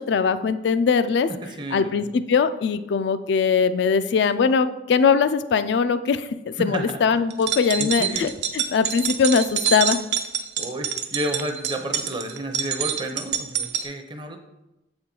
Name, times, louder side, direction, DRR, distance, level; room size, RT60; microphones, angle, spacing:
voice 1, 0.0-1.3 1.7-10.0, left 5 dB, 65° left, 11 dB, 0.3 m, -21 dB
voice 2, 1.4-2.1 6.6-7.0 7.8-8.3 10.6-14.4, right 1 dB, 25° right, 5 dB, 0.6 m, -31 dB
sound 1, 7.3-13.9, right 8 dB, 65° right, 0.6 m, -26 dB
7.2 x 4.4 x 3.8 m, 0.97 s
head